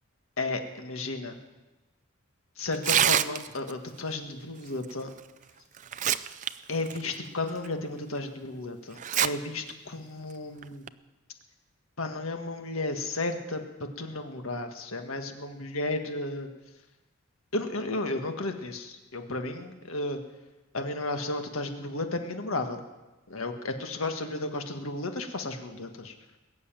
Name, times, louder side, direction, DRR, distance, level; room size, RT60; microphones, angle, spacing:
voice 1, 0.4-1.4 2.6-5.1 6.7-10.9 12.0-16.5 17.5-20.2 20.7-22.8 23.3-26.2, left 2 dB, 80° left, 5 dB, 1.8 m, -33 dB
Tearing, 2.7-3.7 5.2-5.3 5.8-6.5 6.9-7.0 7.6-7.7 9.0-9.3 9.7-9.8 10.6-10.9, right 10 dB, 35° right, 0.4 m, -25 dB
21.0 x 7.0 x 9.0 m, 1.1 s
head